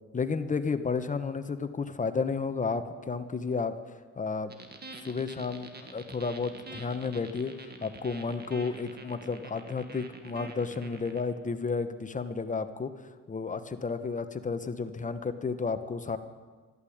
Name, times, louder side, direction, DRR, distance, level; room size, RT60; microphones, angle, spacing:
voice 1, 0.1-3.7 4.2-4.5 5.0-7.5 7.8-12.9 13.3-16.2, left 4 dB, 25° left, 9 dB, 1.2 m, -32 dB
sound 1, 4.5-11.2, right 3 dB, 35° right, 2.0 m, -46 dB
12.5 x 12.0 x 8.7 m, 1.4 s
cardioid pair, 90°, 30 cm